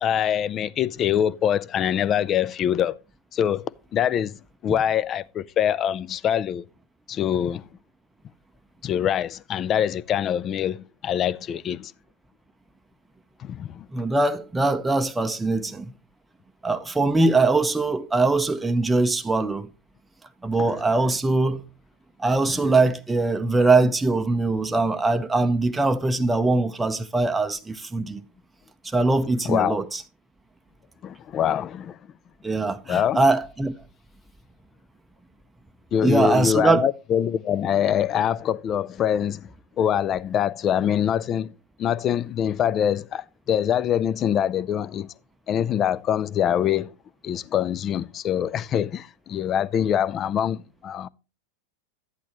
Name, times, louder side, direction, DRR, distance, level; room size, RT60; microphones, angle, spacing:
voice 1, 0.0-3.0 3.3-4.4 4.6-6.6 7.1-7.7 8.8-11.9 13.4-13.9 20.6-20.8 22.5-22.8 29.4-29.8 31.0-32.0 32.9-33.2 35.9-41.5 41.8-45.1 45.5-46.9 47.2-51.1, left 9 dB, 35° left, 0.4 m, -24 dB
voice 2, 13.9-15.9 16.6-19.7 20.4-21.6 22.2-28.2 28.8-30.0 32.4-33.7 36.0-36.9, right 3 dB, 10° right, 0.6 m, -22 dB
11.0 x 8.4 x 3.0 m
hypercardioid pair, 100°, 0 cm